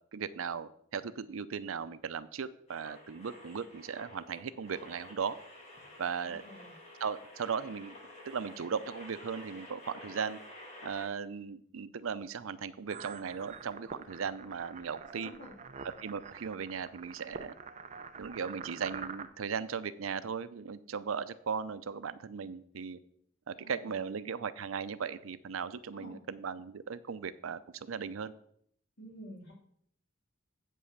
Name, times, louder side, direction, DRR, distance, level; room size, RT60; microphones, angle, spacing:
voice 1, 0.1-5.4 6.0-6.4 7.0-7.9 8.2-10.4 10.8-15.3 16.0-17.6 18.2-23.0 23.5-28.3, right 6 dB, 85° right, 14 dB, 0.5 m, -37 dB
sound 1, 2.7-11.1, left 1 dB, 35° left, 2.0 m, -51 dB
voice 2, 6.2-6.7 15.2-15.5 23.6-24.1 25.9-26.2 29.0-29.5, equal, 55° left, -1 dB, 2.6 m, -49 dB
sound 2, 12.9-19.3, right 5 dB, 35° right, 0.5 m, -46 dB
8.3 x 5.5 x 6.5 m, 0.66 s
head